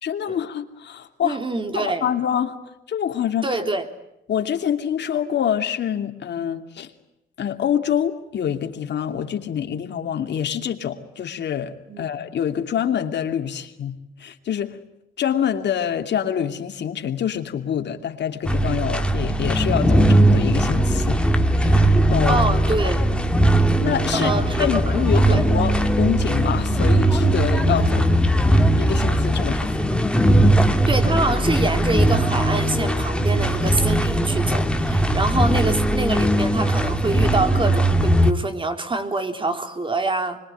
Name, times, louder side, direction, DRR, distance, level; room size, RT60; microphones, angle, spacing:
voice 1, 0.0-1.4 1.7-2.6 2.9-3.5 4.3-6.9 7.4-14.8 15.2-21.2 21.5-22.4 23.8-24.3 24.6-28.1 28.8-29.8, left 9 dB, 60° left, 5 dB, 2.8 m, -26 dB
voice 2, 1.2-2.1 3.4-3.8 11.9-12.1 22.3-23.1 24.1-25.4 30.9-40.4, right 2 dB, 25° right, 7 dB, 3.4 m, -25 dB
sound 1, 18.4-38.3, right 1 dB, 5° left, 2.2 m, -19 dB
25.5 x 23.0 x 9.3 m, 0.86 s
cardioid pair, 90°, 20 cm